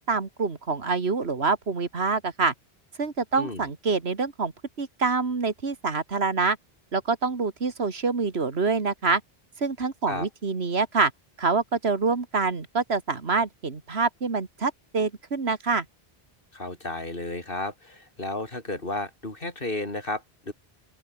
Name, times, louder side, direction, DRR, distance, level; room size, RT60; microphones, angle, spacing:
voice 1, 0.0-2.5 3.0-4.5 4.8-6.6 6.9-9.2 9.6-11.1 11.4-15.8, right 4 dB, 85° right, 2.3 m, -26 dB
voice 2, 16.5-20.5, left 2 dB, 60° left, 4.0 m, -33 dB
open air
omnidirectional pair, 1.0 m